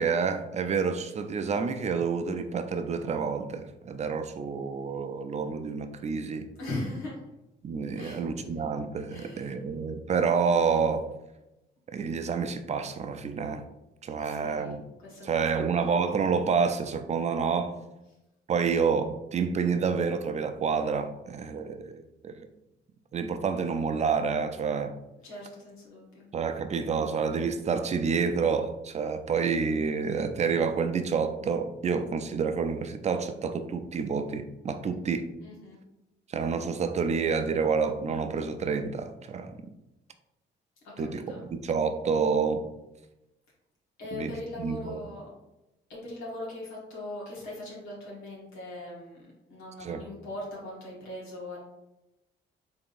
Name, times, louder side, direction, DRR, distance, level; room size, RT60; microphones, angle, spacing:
voice 1, 0.0-6.5 7.6-11.1 11.9-13.6 14.0-14.8 15.3-17.7 18.5-22.4 23.1-24.9 26.3-35.3 36.3-39.6 41.0-41.2 41.5-42.6 44.1-44.3 44.6-45.0 49.8-50.0, right 5 dB, 35° right, 8 dB, 0.4 m, -28 dB
voice 2, 6.6-7.2 7.9-8.6 9.1-9.6 14.2-15.7 25.2-26.3 35.4-35.8 40.8-41.4 44.0-45.3 45.9-51.6, left 1 dB, 90° left, -5 dB, 1.3 m, -40 dB
3.8 x 3.5 x 2.5 m, 0.93 s
cardioid pair, 90°, 20 cm